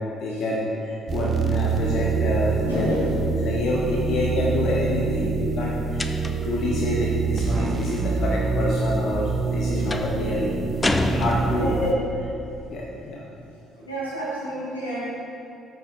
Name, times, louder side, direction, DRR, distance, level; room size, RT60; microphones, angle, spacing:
voice 1, 0.0-10.6 10.9-12.3 12.7-13.2, left 1 dB, 50° left, -3 dB, 0.9 m, -27 dB
sound 1, 1.1-11.9, right 4 dB, 35° right, 0.7 m, -26 dB
voice 2, 2.6-3.1 9.8-9.9 11.5-11.8 13.4-13.5 13.8-15.1, right 1 dB, 85° left, -8 dB, 2.1 m, -30 dB
sound 2, 6.0-6.6 9.9-10.2 10.8-11.9, left 2 dB, 20° left, 0.5 m, -27 dB
13.5 x 6.5 x 2.7 m, 2.6 s
figure-of-eight pair, 45°, 0 cm